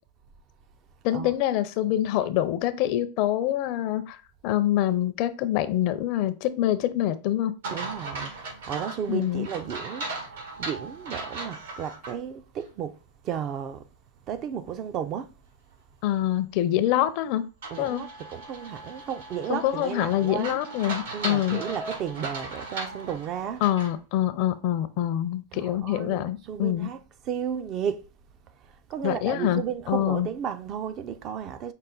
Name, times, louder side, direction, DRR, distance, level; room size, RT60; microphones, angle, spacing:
voice 1, 1.0-4.2 4.4-7.5 9.1-9.5 16.0-17.4 17.8-18.0 19.5-21.6 23.6-26.9 29.0-30.3, left 12 dB, 50° left, 0.5 m, -25 dB
sound 1, 7.6-12.1 12.6-12.7 17.6-24.0, right 2 dB, 80° right, 1.8 m, -37 dB
voice 2, 7.7-10.1 10.6-13.0 13.2-13.8 14.3-15.3 17.7-20.6 21.1-23.6 25.5-28.1 28.9-31.7, right 8 dB, 35° right, 0.4 m, -33 dB
5.4 x 2.1 x 3.8 m
supercardioid pair, 140°, 0 cm